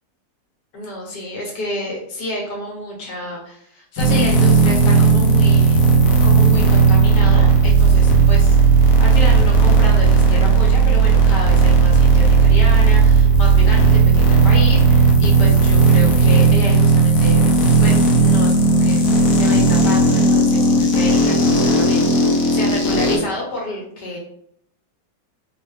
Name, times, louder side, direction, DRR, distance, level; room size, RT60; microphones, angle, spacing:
voice 1, 0.7-17.4 17.8-24.2, left 1 dB, 90° left, -2 dB, 1.6 m, -30 dB
sound 1, 4.0-23.2, right 4 dB, 75° left, 1.2 m, -14 dB
3.2 x 2.3 x 3.2 m, 0.70 s
omnidirectional pair, 1.8 m